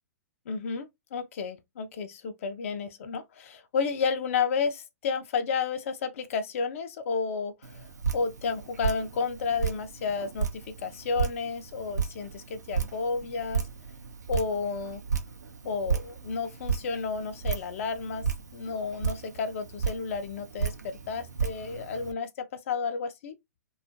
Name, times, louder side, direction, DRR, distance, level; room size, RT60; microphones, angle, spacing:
voice 1, 0.5-13.6 14.3-15.0 15.6-18.3 18.5-20.7 21.1-23.3, left 5 dB, 50° left, 0.4 m, -31 dB
Drip, 7.6-22.1, right 6 dB, 80° right, 0.6 m, -34 dB
2.4 x 2.2 x 2.5 m
figure-of-eight pair, 115°, 9 cm